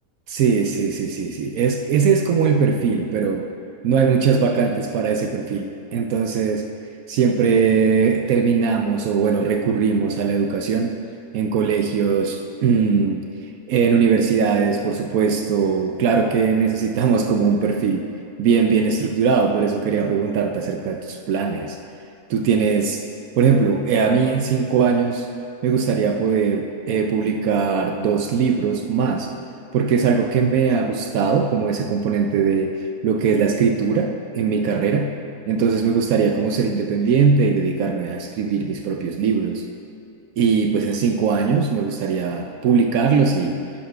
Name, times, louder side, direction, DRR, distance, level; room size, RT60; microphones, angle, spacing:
voice 1, 0.3-3.5 3.8-6.7 7.1-11.0 11.3-13.2 13.7-18.1 18.4-21.8 22.3-23.0 23.4-25.3 25.6-29.3 29.7-32.7 33.0-35.1 35.5-39.6 40.4-43.6, right 5 dB, 75° right, 3 dB, 1.0 m, -20 dB
11.0 x 4.4 x 5.5 m, 2.8 s
omnidirectional pair, 1.6 m